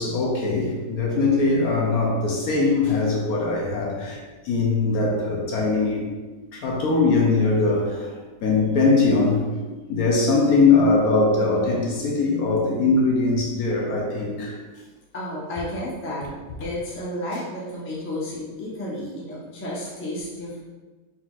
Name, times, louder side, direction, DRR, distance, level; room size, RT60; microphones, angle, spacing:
voice 1, 0.0-6.1 6.5-8.1 8.4-9.4 9.9-14.6, left 3 dB, 65° left, -2 dB, 1.0 m, -21 dB
voice 2, 15.1-16.3 16.6-20.6, left 1 dB, 15° left, -6 dB, 0.4 m, -32 dB
4.2 x 3.8 x 2.4 m, 1.3 s
omnidirectional pair, 1.9 m